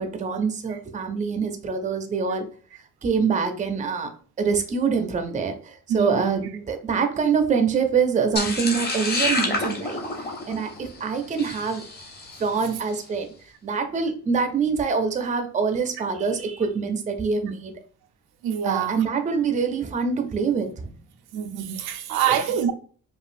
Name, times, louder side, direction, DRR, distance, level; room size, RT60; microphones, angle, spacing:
voice 1, 0.0-2.5 3.0-4.1 4.4-10.0 10.5-11.8 12.4-13.3 13.6-17.8 18.6-20.9 22.3-22.4, right 5 dB, 20° right, 0.5 m, -25 dB
voice 2, 5.9-6.5 18.4-19.0 21.3-22.7, right 9 dB, 90° right, 0.6 m, -25 dB
sound 1, 8.4-12.7, left 2 dB, 25° left, 0.8 m, -29 dB
5.1 x 2.4 x 2.5 m
cardioid pair, 155°, 36 cm